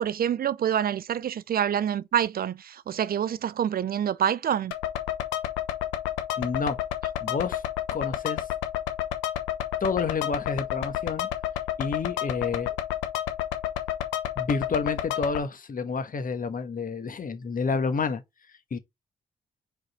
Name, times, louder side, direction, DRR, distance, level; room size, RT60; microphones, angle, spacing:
voice 1, 0.0-4.7, right 9 dB, 50° right, 0.5 m, -26 dB
sound 1, 4.7-15.4, left 12 dB, 80° left, 0.9 m, -31 dB
voice 2, 6.4-6.8 7.2-7.6 7.9-8.5 9.8-11.3 11.8-12.7 14.4-18.2 18.7-18.8, left 4 dB, 45° left, 1.3 m, -29 dB
4.7 x 4.7 x 4.3 m
hypercardioid pair, 45°, 19 cm